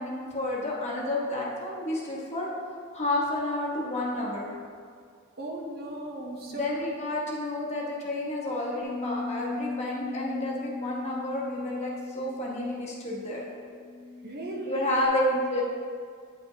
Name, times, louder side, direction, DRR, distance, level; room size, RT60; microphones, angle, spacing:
voice 1, 0.0-2.5 2.9-4.5 6.5-13.4 14.7-15.6, left 1 dB, 30° left, -4 dB, 1.2 m, -30 dB
voice 2, 5.4-6.9 14.2-14.9, right 1 dB, 45° right, 0 dB, 0.7 m, -37 dB
Bass guitar, 8.8-15.1, left 3 dB, 75° left, 0.9 m, -38 dB
9.1 x 5.4 x 2.8 m, 2.1 s
head